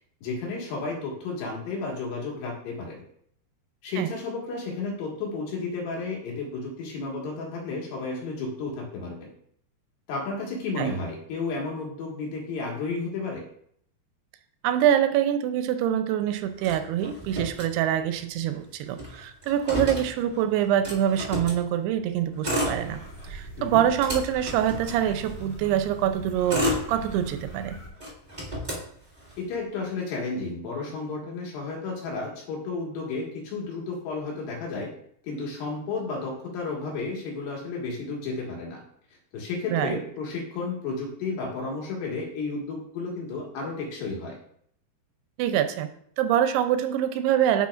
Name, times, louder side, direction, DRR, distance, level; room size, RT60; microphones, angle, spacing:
voice 1, 0.2-3.0 3.8-9.3 10.1-13.4 19.7-19.8 23.6-23.9 29.4-34.9 35.2-38.8 39.3-44.4, left 3 dB, 85° left, -2 dB, 3.8 m, -32 dB
voice 2, 14.6-23.0 23.3-27.8 39.7-40.0 45.4-45.9 46.2-47.7, right 10 dB, 85° right, 9 dB, 2.6 m, -25 dB
Motor vehicle (road), 16.6-18.2 18.5-18.6 18.9-21.6 22.3-23.3 23.7-25.5 26.1-27.5 28.0-29.5, left 1 dB, 65° right, 0.4 m, -32 dB
sound 1, 22.5-27.9, right 1 dB, 10° left, 1.0 m, -42 dB
10.5 x 5.6 x 2.4 m, 0.67 s
omnidirectional pair, 4.7 m